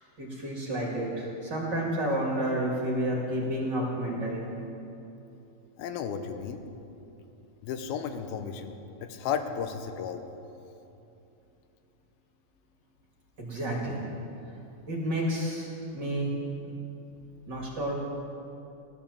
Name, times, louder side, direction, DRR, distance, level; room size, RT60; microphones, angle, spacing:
voice 1, 0.2-4.5 13.4-14.0 14.9-16.3 17.5-17.9, right 1 dB, 35° right, -3 dB, 2.3 m, -30 dB
voice 2, 5.8-6.6 7.6-10.2, left 7 dB, 85° left, 8 dB, 2.7 m, -34 dB
16.0 x 11.5 x 7.1 m, 2.9 s
omnidirectional pair, 4.3 m